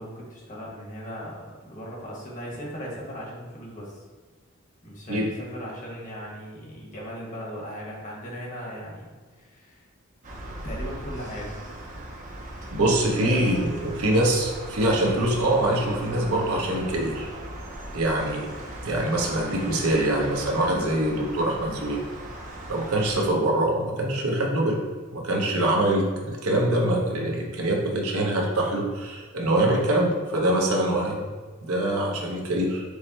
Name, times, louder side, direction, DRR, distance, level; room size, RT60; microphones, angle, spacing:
voice 1, 0.0-4.0 4.8-9.8 10.6-11.6 13.2-13.6, equal, 35° left, -4 dB, 1.1 m, -38 dB
sound 1, 10.2-23.3, right 1 dB, 35° right, 0.5 m, -38 dB
voice 2, 12.7-17.3 17.9-18.5 18.8-22.0 22.7-24.8 25.1-31.2 31.6-32.8, right 1 dB, 80° right, -1 dB, 0.8 m, -24 dB
4.8 x 2.1 x 4.1 m, 1.4 s
head